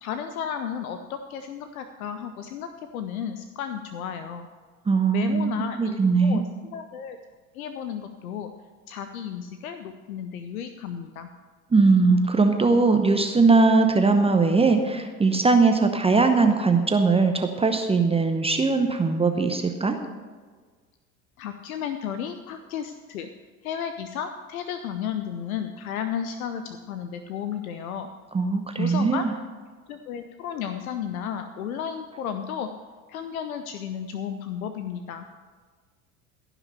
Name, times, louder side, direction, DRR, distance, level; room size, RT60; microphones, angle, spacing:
voice 1, 0.0-4.5 5.1-7.2 7.5-8.5 8.9-11.3 21.4-23.3 23.6-28.1 28.7-29.3 29.9-32.7 33.1-35.3, left 8 dB, 75° left, 8 dB, 0.8 m, -33 dB
voice 2, 4.9-5.5 5.8-6.4 11.7-20.0 28.3-29.3, right 4 dB, 15° right, 6 dB, 0.8 m, -20 dB
15.0 x 6.0 x 6.9 m, 1.5 s
hypercardioid pair, 75°, 42 cm